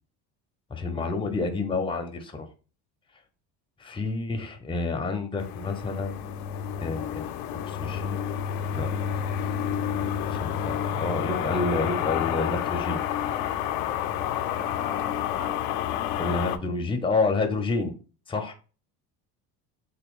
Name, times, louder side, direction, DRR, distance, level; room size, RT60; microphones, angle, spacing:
voice 1, 0.7-2.5 3.8-6.4 6.8-7.3 7.7-8.3 8.7-8.9 10.2-13.0 16.2-17.9 18.3-18.5, left 3 dB, 10° left, 0.6 m, -29 dB
sound 1, 5.4-16.6, left 9 dB, 75° left, 0.6 m, -29 dB
voice 2, 14.4-15.6, right 2 dB, 90° right, 1.8 m, -45 dB
3.5 x 2.2 x 3.6 m
hypercardioid pair, 75°, 50 cm